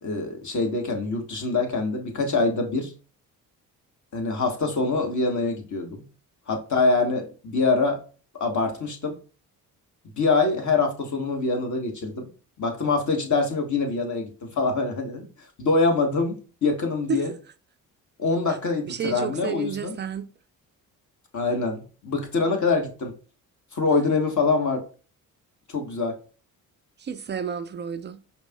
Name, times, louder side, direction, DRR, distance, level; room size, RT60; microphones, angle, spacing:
voice 1, 0.0-2.9 4.1-6.0 6.5-8.0 8.4-9.2 10.2-12.3 12.6-15.3 15.6-17.3 18.2-19.9 21.3-23.1 23.7-24.8 25.7-26.2, left 3 dB, 40° left, 1.3 m, -24 dB
voice 2, 18.8-20.3 27.0-28.2, right 7 dB, 25° right, 0.4 m, -31 dB
5.1 x 2.8 x 2.3 m
figure-of-eight pair, 40°, 47 cm